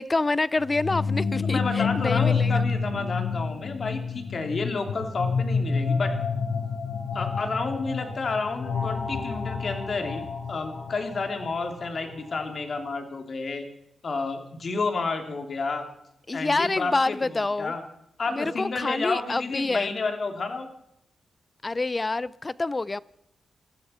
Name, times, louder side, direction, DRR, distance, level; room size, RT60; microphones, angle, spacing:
voice 1, 0.0-2.6 16.3-17.7 18.3-19.9 21.6-23.0, left 3 dB, 30° left, 0.5 m, -27 dB
sound 1, 0.6-12.4, left 5 dB, 85° left, 6.7 m, -29 dB
voice 2, 1.4-6.1 7.1-13.6 14.0-15.8 16.3-17.8 18.2-20.7, left 3 dB, 55° left, 2.9 m, -30 dB
21.0 x 14.5 x 4.4 m
cardioid pair, 85°, 0 cm